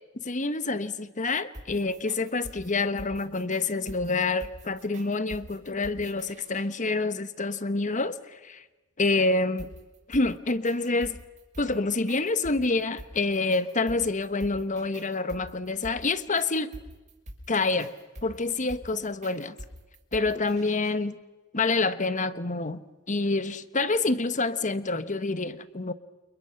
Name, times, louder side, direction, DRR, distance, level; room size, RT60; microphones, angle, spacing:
voice 1, 0.2-8.2 8.4-8.6 9.0-9.7 10.1-11.2 11.6-16.7 17.5-17.9 18.2-19.5 20.1-21.2 21.5-22.8 23.1-25.9, left 3 dB, 35° left, 12 dB, 1.2 m, -27 dB
sound 1, 1.4-6.7 9.6-21.0, right 1 dB, 35° right, 6.5 m, -46 dB
29.0 x 29.0 x 5.9 m, 1.2 s
head